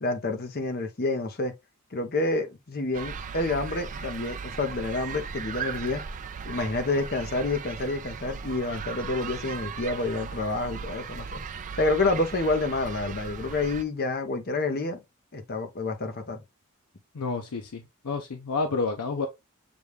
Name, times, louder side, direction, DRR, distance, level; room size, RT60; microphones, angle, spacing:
voice 1, 0.0-1.5 1.9-6.0 6.4-11.4 11.8-15.0 15.3-16.4, left 2 dB, 45° left, 0.8 m, -28 dB
sound 1, 2.9-13.8, right 6 dB, 35° right, 0.4 m, -37 dB
voice 2, 17.1-19.3, left 4 dB, 85° left, 0.6 m, -30 dB
6.9 x 2.3 x 3.2 m
head